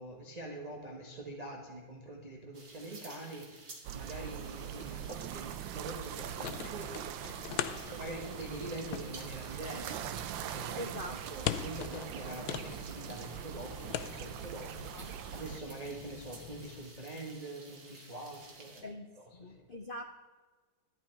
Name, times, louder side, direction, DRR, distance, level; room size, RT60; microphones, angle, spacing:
voice 1, 0.0-6.9 8.0-19.6, right 1 dB, 25° right, 0 dB, 1.2 m, -45 dB
sound 1, 2.5-18.8, right 3 dB, 50° right, 2.4 m, -53 dB
sound 2, 3.8-15.6, right 11 dB, 80° right, 1.3 m, -42 dB
sound 3, 5.9-16.8, left 11 dB, 90° left, 1.4 m, -43 dB
voice 2, 10.8-11.2 14.9-15.1 18.8-20.0, left 1 dB, 70° left, 4 dB, 0.5 m, -43 dB
11.5 x 10.5 x 4.5 m, 1.3 s
omnidirectional pair, 2.0 m